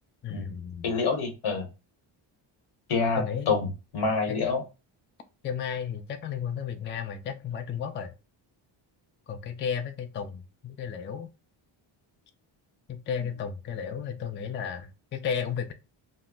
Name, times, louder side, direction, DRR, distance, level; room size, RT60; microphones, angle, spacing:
voice 1, 0.2-0.9 3.2-3.6 4.3-4.4 5.4-8.1 9.3-11.3 12.9-15.7, left 7 dB, 25° left, 0.3 m, -33 dB
voice 2, 0.8-1.7 2.9-3.7 3.9-4.6, left 4 dB, 75° left, 1.1 m, -27 dB
2.1 x 2.0 x 3.7 m
cardioid pair, 75°, 50 cm